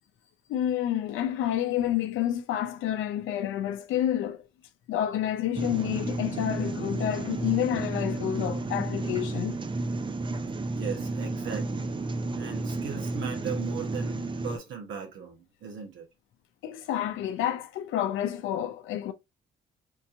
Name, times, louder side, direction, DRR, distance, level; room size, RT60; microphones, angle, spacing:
voice 1, 0.5-4.4 4.9-9.6 16.6-19.1, left 11 dB, 80° left, 0.5 m, -29 dB
sound 1, 5.5-14.6, right 2 dB, 25° right, 0.5 m, -32 dB
voice 2, 10.7-11.9 12.4-16.1, right 7 dB, 75° right, 1.2 m, -38 dB
4.5 x 2.9 x 2.6 m
cardioid pair, 90°, 20 cm